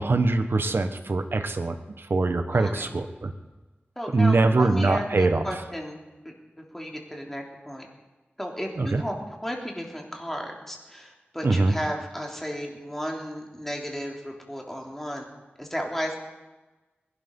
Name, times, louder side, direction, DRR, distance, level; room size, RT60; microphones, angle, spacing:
voice 1, 0.0-3.3 4.1-5.4 8.8-9.0 11.4-11.7, right 3 dB, 65° right, 8 dB, 1.3 m, -23 dB
voice 2, 2.5-2.9 4.0-6.0 6.2-7.9 8.4-15.3 15.6-16.1, equal, 5° left, 0 dB, 3.5 m, -34 dB
21.0 x 12.0 x 5.5 m, 1.1 s
wide cardioid pair, 65°, 4 cm